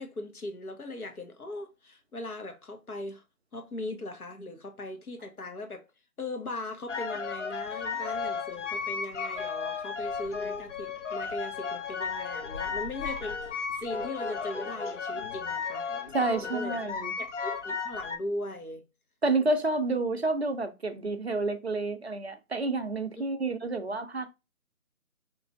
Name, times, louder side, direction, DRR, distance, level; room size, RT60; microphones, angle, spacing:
voice 1, 0.0-3.2 3.5-5.9 6.2-15.9 16.4-16.8 17.2-18.9 23.2-23.3, left 2 dB, 85° left, 1.0 m, -39 dB
sound 1, 6.9-18.2, left 5 dB, 60° left, 0.5 m, -34 dB
voice 2, 16.1-17.1 19.2-24.3, right 3 dB, 50° right, 0.4 m, -29 dB
2.9 x 2.5 x 2.5 m
figure-of-eight pair, 160°, 43 cm